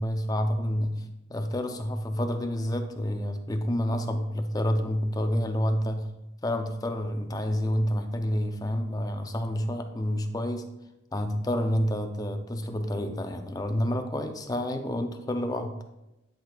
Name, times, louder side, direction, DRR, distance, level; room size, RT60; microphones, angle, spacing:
voice 1, 0.0-6.1 6.4-10.7 11.1-15.8, equal, 20° left, 6 dB, 0.5 m, -29 dB
10.5 x 5.9 x 2.3 m, 0.95 s
head